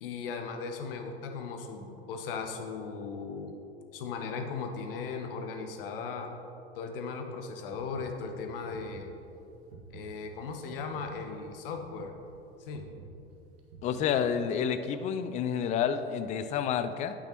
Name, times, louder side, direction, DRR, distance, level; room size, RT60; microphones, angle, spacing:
voice 1, 0.0-3.5 3.9-6.3 6.7-9.1 9.9-12.1 12.6-12.9, left 5 dB, 60° left, 5 dB, 1.0 m, -37 dB
sound 1, 7.7-14.4, right 4 dB, 60° right, 1.3 m, -51 dB
voice 2, 13.8-17.2, left 8 dB, 25° left, 10 dB, 0.4 m, -29 dB
8.9 x 8.9 x 2.9 m, 2.8 s
figure-of-eight pair, 80°, 32 cm